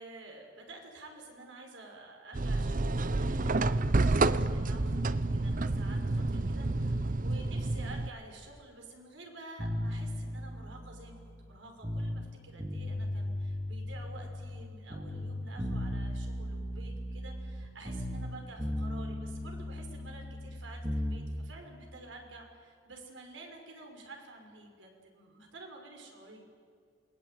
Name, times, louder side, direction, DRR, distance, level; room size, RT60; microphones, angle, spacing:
voice 1, 0.0-26.4, right 2 dB, 75° right, 2 dB, 6.0 m, -50 dB
sound 1, 2.3-8.1, right 2 dB, 45° right, 0.7 m, -29 dB
sound 2, 9.6-12.3 12.6-14.6 14.9-18.3 18.6-21.2, left 1 dB, 25° right, 3.0 m, -36 dB
28.0 x 20.5 x 9.3 m, 2.2 s
head